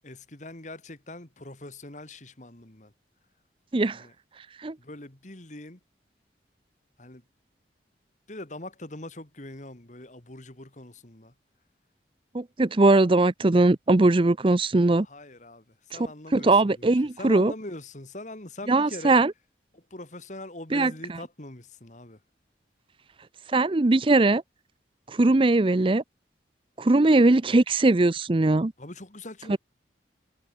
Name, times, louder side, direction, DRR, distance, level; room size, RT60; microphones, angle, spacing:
voice 1, 0.0-2.9 3.9-4.1 4.8-5.8 7.0-7.2 8.3-11.3 14.8-19.2 19.7-22.2 28.8-29.6, left 2 dB, 45° left, 2.5 m, -42 dB
voice 2, 12.3-15.1 16.3-17.5 18.7-19.3 20.7-20.9 23.5-24.4 25.1-26.0 26.8-28.7 29.5-29.6, right 2 dB, 30° right, 0.6 m, -20 dB
head